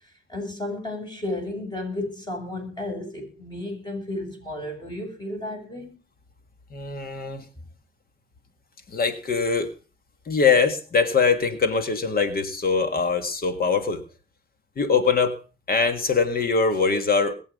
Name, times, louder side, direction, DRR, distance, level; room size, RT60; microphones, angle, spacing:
voice 1, 0.3-5.9, left 1 dB, 20° left, 7.5 m, -33 dB
voice 2, 6.7-7.4 8.9-9.7 10.3-14.0 14.8-15.4 15.7-17.3, left 5 dB, 50° left, 1.8 m, -22 dB
21.5 x 7.9 x 5.2 m
cardioid pair, 90°, 20 cm